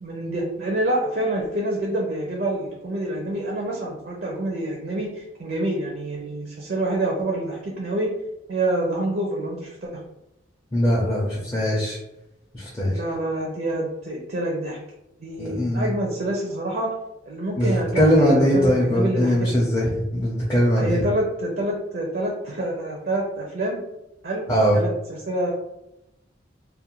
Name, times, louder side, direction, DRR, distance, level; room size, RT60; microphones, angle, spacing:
voice 1, 0.0-8.1 8.5-9.9 12.8-14.8 15.2-16.9 17.3-19.6 20.7-23.8 24.2-24.4 24.7-25.5, right 1 dB, 55° right, -1 dB, 0.5 m, -27 dB
voice 2, 10.7-12.0 12.5-13.0 15.4-15.9 17.6-21.0 24.5-24.8, equal, 20° left, -5 dB, 0.4 m, -21 dB
2.4 x 2.1 x 2.8 m, 0.89 s
head